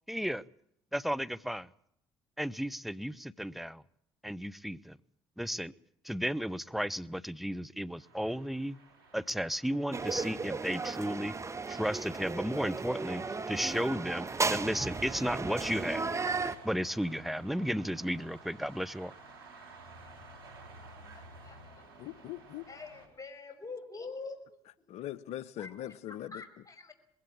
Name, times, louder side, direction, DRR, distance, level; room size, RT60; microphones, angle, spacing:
voice 1, 0.1-0.4 0.9-1.7 2.4-3.8 4.2-5.0 5.4-5.7 6.0-8.8 9.1-11.3 11.7-13.2 13.5-16.0 16.6-19.1, equal, ahead, 1.0 m, -34 dB
sound 1, 7.9-23.1, right 3 dB, 90° right, 3.5 m, -53 dB
sound 2, 9.9-16.6, right 4 dB, 25° right, 1.3 m, -35 dB
voice 2, 21.1-22.1 22.7-24.4 25.6-25.7 26.1-26.9, left 4 dB, 30° left, 5.6 m, -45 dB
voice 3, 22.0-22.7 24.9-26.4, left 12 dB, 65° left, 0.9 m, -41 dB
21.0 x 16.5 x 8.5 m
hypercardioid pair, 55°, 12 cm